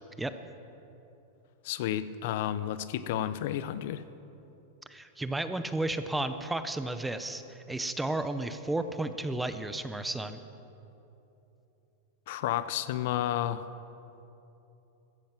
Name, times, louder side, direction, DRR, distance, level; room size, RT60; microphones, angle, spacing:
voice 1, 1.6-4.0 12.3-13.6, left 12 dB, 55° left, 14 dB, 0.6 m, -31 dB
voice 2, 4.9-10.4, right 2 dB, 5° right, 10 dB, 0.5 m, -33 dB
16.0 x 13.5 x 6.0 m, 3.0 s
supercardioid pair, 155°, 0 cm